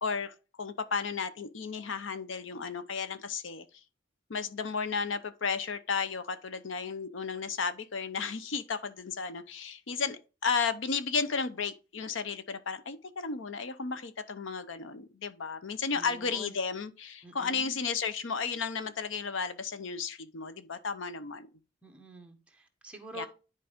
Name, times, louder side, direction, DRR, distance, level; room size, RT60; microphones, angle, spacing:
voice 1, 0.0-3.7 4.3-21.5 23.1-23.3, left 5 dB, 75° left, 0.7 m, -33 dB
voice 2, 15.9-16.6 17.2-17.8 21.8-23.3, right 2 dB, 5° right, 1.3 m, -47 dB
10.5 x 4.7 x 3.5 m
head